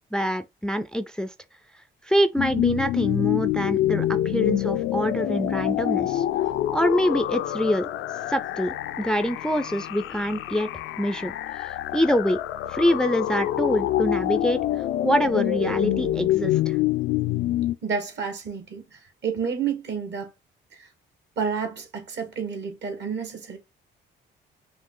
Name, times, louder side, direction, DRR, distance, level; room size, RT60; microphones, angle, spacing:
voice 1, 0.1-1.3 2.0-6.2 6.7-7.9 8.3-12.4 12.7-14.6 15.0-16.8, equal, 5° left, 0.4 m, -25 dB
sound 1, 2.4-17.8, left 13 dB, 80° left, 0.4 m, -26 dB
voice 2, 17.8-20.3 20.8-20.9 21.4-23.6, right 6 dB, 60° right, 1.6 m, -30 dB
5.3 x 2.4 x 3.8 m
cardioid pair, 90°, 20 cm